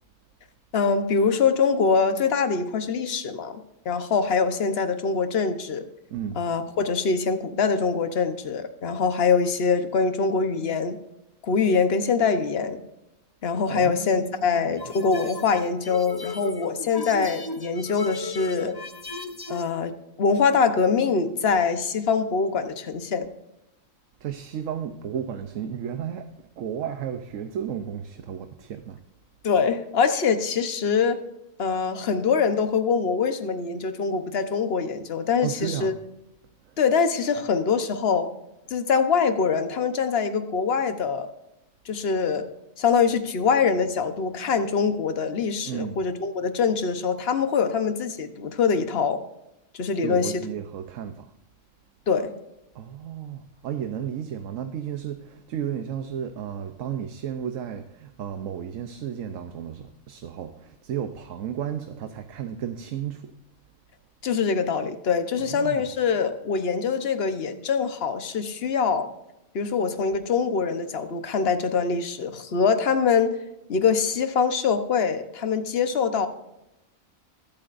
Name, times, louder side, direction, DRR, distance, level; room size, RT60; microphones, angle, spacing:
voice 1, 0.7-5.9 6.4-11.0 11.4-12.8 13.4-18.8 19.5-19.9 20.2-23.3 29.4-31.2 31.6-35.9 36.8-38.3 38.7-41.3 41.8-42.5 42.8-49.2 49.7-50.4 52.1-52.3 64.2-69.1 69.5-73.3 73.7-76.3, left 5 dB, 50° left, 1.2 m, -24 dB
voice 2, 6.1-6.4 13.7-14.7 24.2-29.0 35.4-36.0 36.6-36.8 45.7-46.1 50.0-51.3 52.7-63.3 65.4-65.9, right 9 dB, 75° right, 1.1 m, -33 dB
sound 1, 14.8-19.7, left 3 dB, 25° left, 0.5 m, -36 dB
22.0 x 8.7 x 2.6 m
omnidirectional pair, 1.4 m